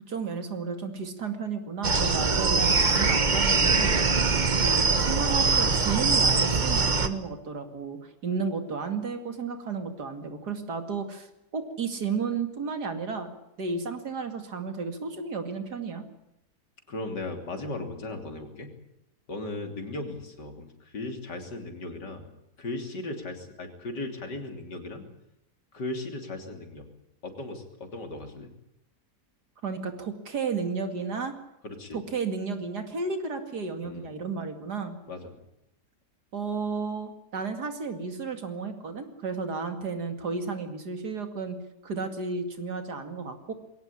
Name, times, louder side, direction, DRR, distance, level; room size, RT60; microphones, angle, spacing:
voice 1, 0.1-4.0 4.4-11.3 11.5-13.3 13.6-16.1 29.6-31.3 31.9-35.0 36.3-41.6 41.8-43.5, right 5 dB, 70° right, 7 dB, 2.9 m, -33 dB
sound 1, 1.8-7.1, right 4 dB, 30° right, 1.2 m, -23 dB
voice 2, 16.9-18.7 19.3-22.3 22.6-25.0 25.7-26.8 27.2-28.5 31.6-32.0 33.8-34.1 35.1-35.4, left 2 dB, 85° left, 5 dB, 3.7 m, -37 dB
22.0 x 17.5 x 9.9 m, 0.85 s
omnidirectional pair, 1.8 m